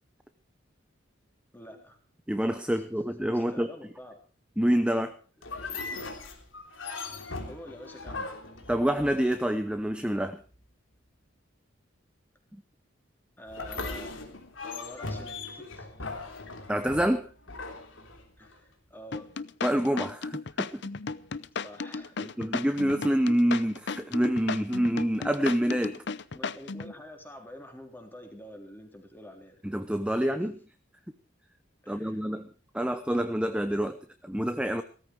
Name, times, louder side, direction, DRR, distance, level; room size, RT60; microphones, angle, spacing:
voice 1, 1.5-2.0 3.3-4.2 7.0-8.3 13.4-14.1 14.6-15.9 18.4-19.3 21.6-22.3 26.3-29.6 30.2-30.4 31.8-32.2, equal, 10° left, 3 dB, 3.6 m, -47 dB
voice 2, 2.3-3.7 4.6-5.2 8.7-10.4 16.7-17.3 19.6-20.8 22.2-26.0 29.6-30.6 31.9-32.5 32.7-34.8, equal, 5° right, 9 dB, 0.8 m, -27 dB
sound 1, 5.4-9.7 13.5-18.6, left 3 dB, 75° left, 3.3 m, -39 dB
sound 2, 19.1-26.9, left 4 dB, 60° left, 0.7 m, -35 dB
17.0 x 14.5 x 4.6 m, 0.38 s
head